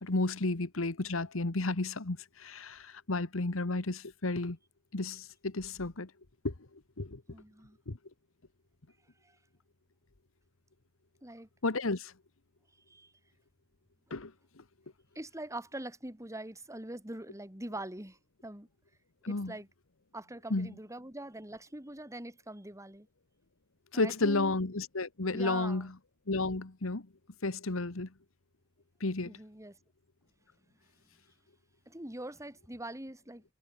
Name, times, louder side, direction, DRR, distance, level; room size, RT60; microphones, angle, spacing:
voice 1, 0.0-4.6 4.9-6.1 6.4-6.5 7.0-7.2 7.9-8.0 11.6-12.1 14.1-14.3 19.2-19.5 20.5-20.7 23.9-25.9 26.3-27.0 27.4-28.1 29.0-29.4, left 2 dB, 90° left, 1.5 m, -32 dB
voice 2, 7.3-7.8 9.2-9.3 11.2-11.5 12.9-13.1 15.2-18.7 19.3-19.7 20.1-23.1 23.9-24.5 25.3-25.9 29.3-29.8 31.9-33.4, right 1 dB, 15° right, 5.3 m, -43 dB
head